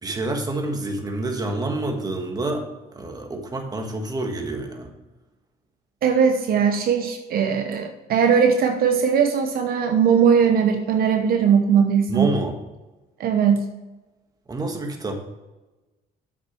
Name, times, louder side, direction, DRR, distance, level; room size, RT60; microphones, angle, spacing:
voice 1, 0.0-2.7 2.9-4.9 12.1-12.6 14.5-15.1, right 2 dB, 20° right, 3 dB, 1.6 m, -27 dB
voice 2, 6.0-12.3 13.2-13.6, right 7 dB, 60° right, 5 dB, 0.9 m, -19 dB
8.0 x 6.5 x 4.5 m, 1.1 s
cardioid pair, 110°, 17 cm